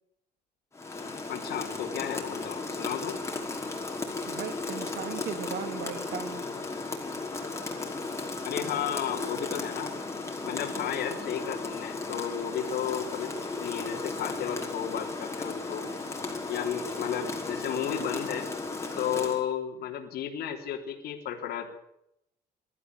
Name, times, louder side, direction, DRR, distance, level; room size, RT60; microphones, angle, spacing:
Rain, 0.7-19.5, left 3 dB, 15° left, 5.4 m, -35 dB
voice 1, 1.3-3.2 8.4-9.9 10.5-15.9 16.5-18.5 19.0-21.7, left 9 dB, 70° left, 1 dB, 3.8 m, -33 dB
voice 2, 4.3-6.4 10.4-10.9, right 9 dB, 80° right, 10 dB, 2.7 m, -38 dB
21.0 x 13.5 x 9.7 m, 0.78 s
cardioid pair, 110°, 17 cm